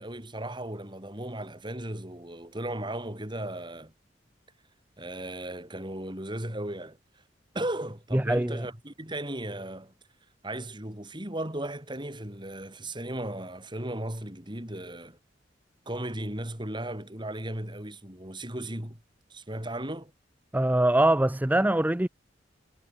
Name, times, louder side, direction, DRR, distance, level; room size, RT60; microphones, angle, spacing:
voice 1, 0.0-3.9 5.0-7.0 7.5-9.9 10.4-15.2 15.9-19.0 19.3-20.1, right 1 dB, 25° right, 5.4 m, -36 dB
voice 2, 8.1-8.7 20.5-22.1, right 1 dB, 10° right, 0.5 m, -23 dB
head